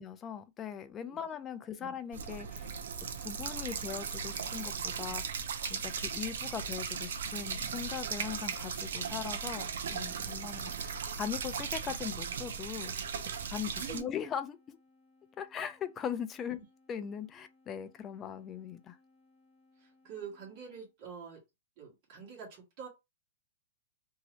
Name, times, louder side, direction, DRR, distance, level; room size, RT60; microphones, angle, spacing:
voice 1, 0.0-2.7 3.2-5.4 5.7-12.9 13.5-14.8 15.4-16.6 16.9-19.0, left 8 dB, 20° left, 0.3 m, -40 dB
sound 1, 1.3-20.9, left 2 dB, 5° right, 1.5 m, -67 dB
sound 2, 2.1-14.0, right 6 dB, 80° right, 0.5 m, -37 dB
voice 2, 13.7-14.1 16.5-16.6 19.8-21.4 21.8-22.9, right 7 dB, 40° right, 1.6 m, -46 dB
2.8 x 2.7 x 3.0 m
hypercardioid pair, 160°, 0 cm